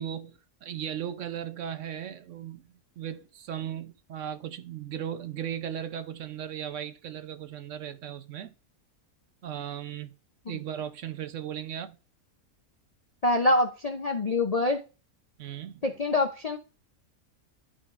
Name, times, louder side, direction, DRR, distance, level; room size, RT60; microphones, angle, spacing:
voice 1, 0.0-8.5 9.4-10.1 10.5-12.0 15.4-15.8, right 9 dB, 65° right, 0.9 m, -37 dB
voice 2, 13.2-14.8 15.8-16.6, left 2 dB, 45° left, 0.5 m, -25 dB
12.5 x 5.2 x 2.5 m
omnidirectional pair, 1.5 m